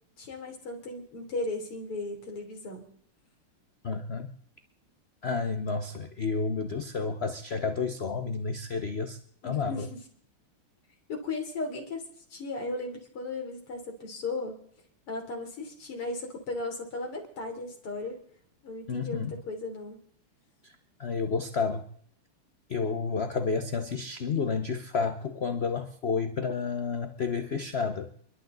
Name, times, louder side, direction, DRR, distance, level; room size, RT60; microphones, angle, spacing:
voice 1, 0.2-2.9 9.4-10.0 11.1-14.5 15.1-18.2 18.6-20.0, left 2 dB, 85° left, 1 dB, 4.5 m, -36 dB
voice 2, 3.8-4.3 5.2-9.2 9.4-9.9 18.9-19.3 20.6-21.8 22.7-28.1, left 5 dB, 60° left, 8 dB, 0.6 m, -30 dB
29.0 x 12.0 x 4.0 m, 0.62 s
omnidirectional pair, 2.4 m